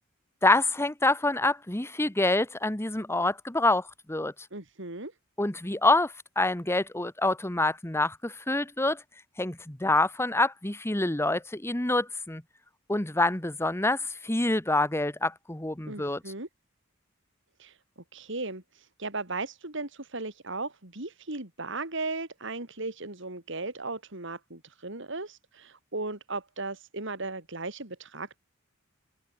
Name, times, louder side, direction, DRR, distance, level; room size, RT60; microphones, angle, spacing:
voice 1, 0.4-4.3 5.4-9.0 9.4-12.4 12.9-16.2, left 2 dB, 15° left, 1.3 m, -26 dB
voice 2, 4.5-5.1 15.8-16.5 17.6-17.8 18.1-28.4, right 3 dB, 65° right, 4.1 m, -36 dB
head